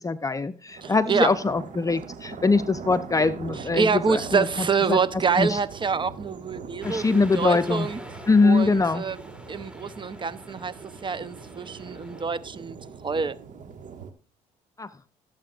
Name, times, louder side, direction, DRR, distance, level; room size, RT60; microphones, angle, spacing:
voice 1, 0.0-5.6 6.8-7.9 8.3-9.0 14.8-14.9, left 3 dB, 20° left, 0.7 m, -23 dB
sound 1, 0.7-14.1, right 6 dB, 55° right, 1.7 m, -42 dB
voice 2, 0.8-1.3 3.6-8.0 8.4-9.2 9.5-10.7 11.0-12.8 13.0-13.4, right 5 dB, 30° right, 0.9 m, -26 dB
sound 2, 6.8-12.3, right 1 dB, 5° right, 1.8 m, -44 dB
17.5 x 7.9 x 2.5 m
supercardioid pair, 70°, 16 cm